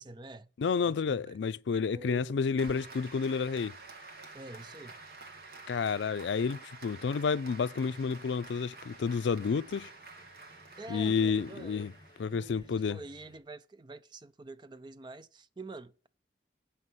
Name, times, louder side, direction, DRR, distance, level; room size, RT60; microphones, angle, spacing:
voice 1, 0.0-0.5 0.8-1.4 1.9-2.4 4.3-5.0 10.8-11.9 12.3-16.1, right 2 dB, 25° right, 0.4 m, -47 dB
voice 2, 0.6-3.7 5.7-9.9 10.9-11.9 12.2-13.0, left 5 dB, 85° left, 0.4 m, -30 dB
Applause, 2.6-12.6, right 3 dB, 60° right, 1.5 m, -50 dB
sound 1, 3.5-13.4, left 1 dB, 25° left, 2.0 m, -62 dB
8.3 x 5.6 x 7.8 m
head